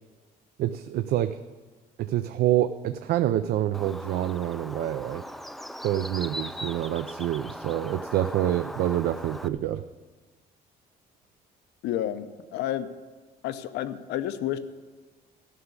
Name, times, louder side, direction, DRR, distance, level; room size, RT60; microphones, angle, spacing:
voice 1, 0.6-1.4 2.0-5.2 5.8-9.8, right 12 dB, 70° right, 10 dB, 0.5 m, -27 dB
Bird, 3.7-9.5, equal, ahead, 0.3 m, -39 dB
voice 2, 11.8-12.3 12.5-12.9 13.4-14.6, left 12 dB, 85° left, 11 dB, 0.7 m, -30 dB
13.0 x 5.9 x 8.2 m, 1.4 s
cardioid pair, 110°, 17 cm